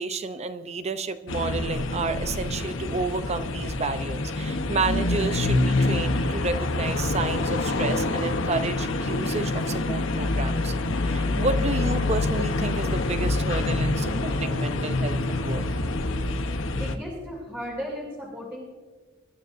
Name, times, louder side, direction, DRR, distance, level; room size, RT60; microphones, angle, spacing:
voice 1, 0.0-10.7 11.0-15.6, right 3 dB, 35° right, 11 dB, 0.6 m, -30 dB
sound 1, 1.3-17.0, left 2 dB, 75° left, 1.0 m, -26 dB
voice 2, 16.7-18.6, equal, 10° right, -5 dB, 2.5 m, -35 dB
25.5 x 12.0 x 2.6 m, 1.5 s
head